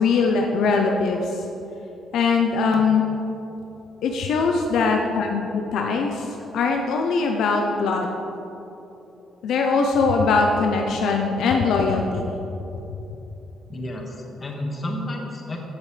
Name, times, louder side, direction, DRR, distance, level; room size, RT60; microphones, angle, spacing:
voice 1, 0.0-1.5 2.1-3.1 4.0-8.2 9.4-12.3, left 4 dB, 75° left, 2 dB, 0.7 m, -21 dB
voice 2, 13.7-15.6, left 1 dB, 35° left, 0 dB, 1.8 m, -31 dB
15.5 x 7.2 x 3.4 m, 3.0 s
cardioid pair, 90°, 0 cm